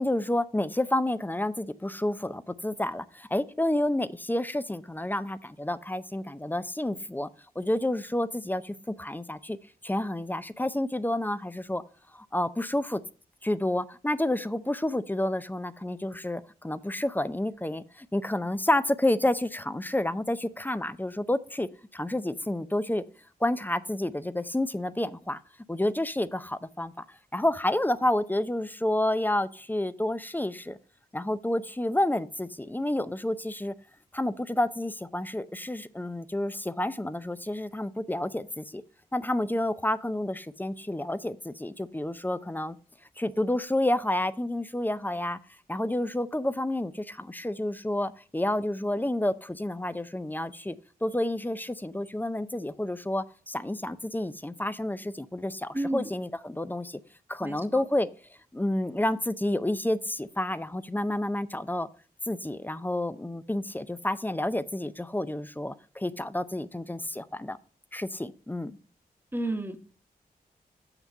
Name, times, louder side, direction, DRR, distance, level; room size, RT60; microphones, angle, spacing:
voice 1, 0.0-7.3 7.6-9.6 9.8-11.8 12.1-13.0 13.4-23.0 23.4-25.4 25.7-27.0 27.3-30.8 31.1-33.7 34.1-38.8 39.1-42.8 43.2-45.4 45.7-57.0 57.3-58.1 58.5-61.9 62.3-67.6 67.9-68.8, left 1 dB, 10° left, 0.5 m, -29 dB
voice 2, 55.7-56.1 57.4-57.8 69.3-69.8, right 1 dB, 15° right, 1.1 m, -31 dB
6.9 x 6.0 x 5.3 m
cardioid pair, 65°, 16 cm